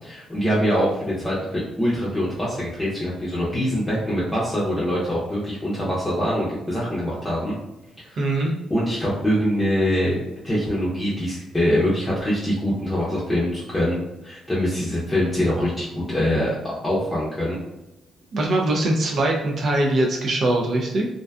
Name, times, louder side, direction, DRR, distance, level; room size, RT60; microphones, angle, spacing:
voice 1, 0.0-7.6 8.0-8.2 8.7-10.2 10.4-14.0 14.2-17.6, equal, 15° left, -8 dB, 0.6 m, -24 dB
voice 2, 8.2-8.5 18.3-21.1, right 1 dB, 55° right, 0 dB, 0.4 m, -22 dB
2.5 x 2.3 x 2.2 m, 0.96 s
cardioid pair, 90°, 0 cm